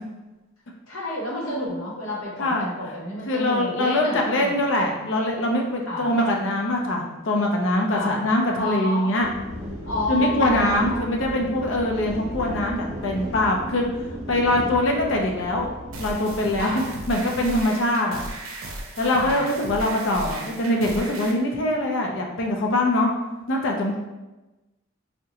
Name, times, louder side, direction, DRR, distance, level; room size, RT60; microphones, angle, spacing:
voice 1, 0.9-4.6 5.9-6.1 7.9-8.2 8.6-9.0 9.8-11.0 16.5-16.9 19.1-19.5, left 1 dB, 85° left, -4 dB, 0.9 m, -30 dB
voice 2, 3.3-9.3 10.1-13.9 14.3-15.7 16.0-18.2 19.0-23.1 23.5-24.0, left 1 dB, 60° left, 1 dB, 0.5 m, -23 dB
sound 1, 9.2-17.4, equal, 35° right, 0.6 m, -35 dB
sound 2, 15.9-21.3, right 2 dB, 75° right, 0.5 m, -36 dB
3.6 x 2.1 x 2.8 m, 1.1 s
head